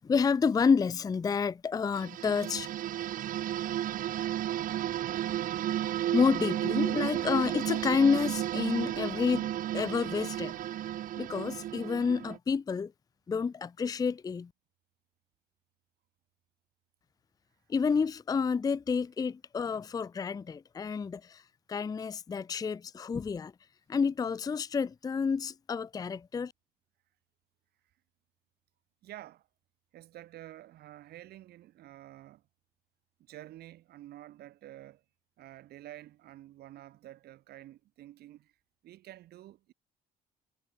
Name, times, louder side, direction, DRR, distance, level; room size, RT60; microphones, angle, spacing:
voice 1, 0.0-2.7 6.1-9.5 9.7-10.6 11.2-12.9 13.3-14.5 17.7-21.4 21.7-23.5 23.9-26.5, left 5 dB, 20° left, 0.5 m, -29 dB
sound 1, 1.9-12.4, right 12 dB, 55° right, 0.6 m, -33 dB
voice 2, 29.0-29.5 29.9-32.4 33.2-35.0 35.4-38.5 38.8-39.7, right 14 dB, 70° right, 2.5 m, -49 dB
cardioid pair, 110°, 17 cm